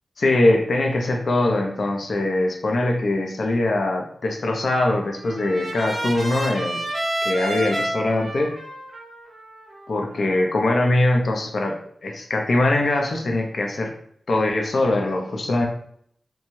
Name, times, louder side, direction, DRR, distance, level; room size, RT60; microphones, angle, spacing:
voice 1, 0.2-6.8 7.2-8.5 9.9-13.9 14.3-15.7, left 2 dB, 65° left, 1 dB, 0.5 m, -22 dB
Trumpet, 4.6-10.7, right 1 dB, 85° right, 1.2 m, -31 dB
3.1 x 2.2 x 2.6 m, 0.63 s
wide cardioid pair, 95°, 0 cm